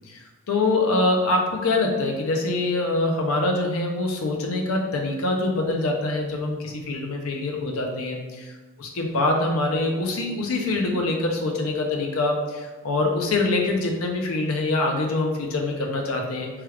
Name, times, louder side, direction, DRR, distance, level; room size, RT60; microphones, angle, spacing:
voice 1, 0.1-8.2 8.8-16.5, left 2 dB, 85° left, 2 dB, 0.6 m, -24 dB
3.2 x 2.3 x 3.2 m, 1.2 s
head